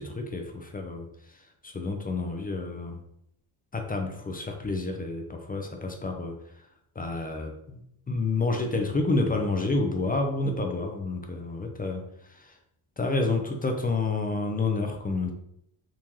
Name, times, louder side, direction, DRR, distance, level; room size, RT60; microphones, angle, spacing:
voice 1, 0.0-3.0 3.7-6.7 6.9-12.6 13.0-15.3, left 3 dB, 20° left, 4 dB, 0.5 m, -29 dB
3.7 x 2.6 x 3.0 m, 0.74 s
supercardioid pair, 70°, 49 cm